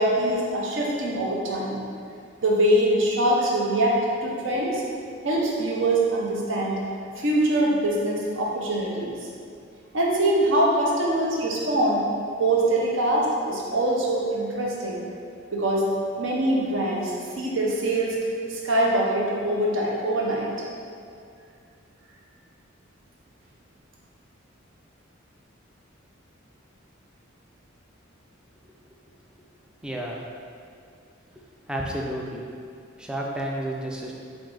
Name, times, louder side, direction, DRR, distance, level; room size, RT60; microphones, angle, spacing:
voice 1, 0.0-1.8 2.4-4.8 5.2-6.8 7.2-9.2 9.9-12.1 12.4-15.0 15.5-15.9 16.2-18.2 18.5-20.5, right 1 dB, 70° right, -3 dB, 0.8 m, -23 dB
voice 2, 29.8-30.2 31.7-32.4 33.0-34.1, right 1 dB, 5° right, -2 dB, 0.4 m, -31 dB
4.5 x 2.6 x 3.8 m, 2.3 s
head